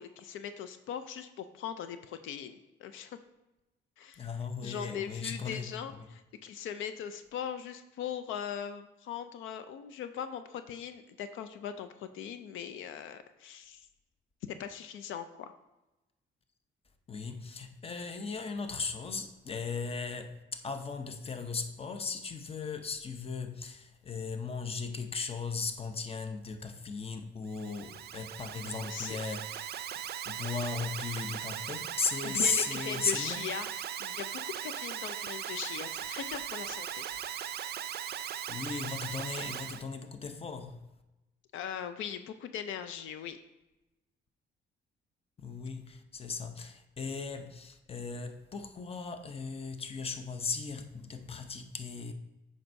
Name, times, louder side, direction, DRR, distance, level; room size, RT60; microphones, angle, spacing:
voice 1, 0.0-3.2 4.0-4.3 4.6-13.9 14.4-15.5 28.9-29.2 32.2-37.1 41.5-43.4, left 8 dB, 80° left, 0.4 m, -40 dB
voice 2, 4.2-6.1 17.1-29.8 30.3-33.4 38.5-40.8 45.4-52.1, left 4 dB, 30° left, 0.6 m, -37 dB
Alarm, 27.5-39.8, right 10 dB, 55° right, 0.4 m, -39 dB
7.5 x 5.3 x 2.6 m
cardioid pair, 90°, 20 cm